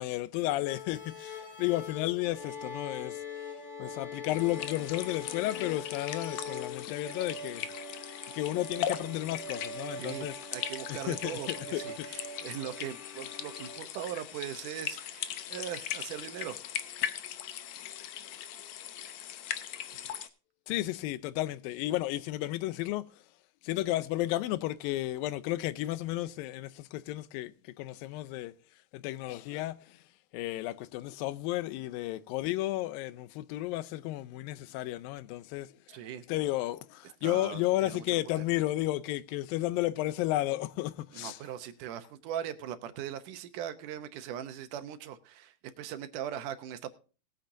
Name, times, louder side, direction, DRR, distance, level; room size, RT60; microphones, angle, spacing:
voice 1, 0.0-3.2 3.8-7.7 8.3-10.3 10.9-12.1 20.7-23.1 23.6-28.5 28.9-30.0 30.3-35.7 36.3-41.4, left 16 dB, 85° left, 2.4 m, -33 dB
sound 1, 0.6-13.8, left 3 dB, 15° left, 2.2 m, -43 dB
sound 2, 4.3-20.3, left 11 dB, 70° left, 1.7 m, -39 dB
voice 2, 10.0-16.6 35.9-36.2 37.2-38.5 41.1-46.9, right 10 dB, 75° right, 2.3 m, -40 dB
19.5 x 8.8 x 2.6 m
omnidirectional pair, 4.0 m